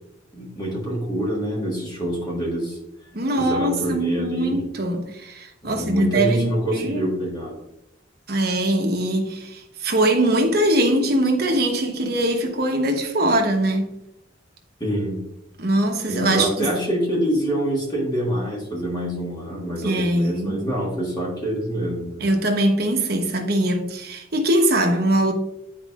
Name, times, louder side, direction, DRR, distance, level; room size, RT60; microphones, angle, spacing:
voice 1, 0.3-2.8 3.4-4.5 5.6-7.6 14.8-15.2 16.1-22.2, equal, 25° left, 1.6 m, -26 dB
voice 2, 3.1-7.1 8.3-13.9 15.6-16.7 19.8-20.6 22.2-25.3, right 1 dB, 55° right, 1.1 m, -22 dB
10.0 x 4.7 x 2.5 m
head